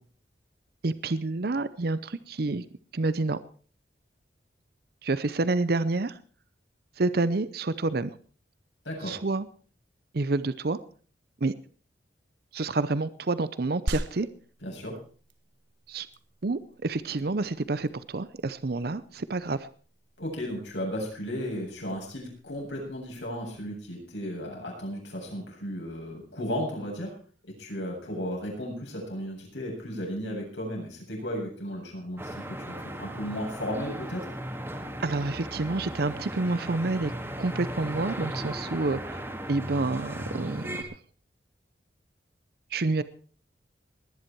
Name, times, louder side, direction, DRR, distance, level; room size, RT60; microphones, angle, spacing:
voice 1, 0.8-2.7 2.9-3.4 5.0-6.2 7.0-8.1 9.0-9.5 10.1-10.8 11.4-11.5 12.5-14.3 15.9-16.1 16.4-19.7 35.0-37.1 37.4-40.9 42.7-43.0, right 3 dB, 55° right, 15 dB, 0.7 m, -28 dB
voice 2, 8.8-9.2 14.6-15.0 20.2-27.1 27.6-34.2, equal, 80° left, -1 dB, 8.0 m, -35 dB
sound 1, 13.9-23.8, right 1 dB, 85° right, 1.2 m, -42 dB
sound 2, 32.2-40.8, right 1 dB, 15° right, 1.9 m, -37 dB
20.0 x 10.5 x 4.6 m, 0.42 s
head